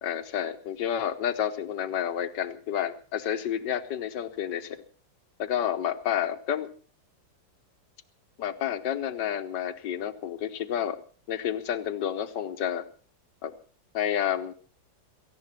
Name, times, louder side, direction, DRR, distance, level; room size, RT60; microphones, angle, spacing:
voice 1, 0.0-4.8 5.4-6.7 8.4-11.0 11.3-12.9 13.4-13.5 13.9-14.5, left 9 dB, 70° left, 11 dB, 1.6 m, -30 dB
17.5 x 15.0 x 4.3 m, 0.40 s
omnidirectional pair, 2.0 m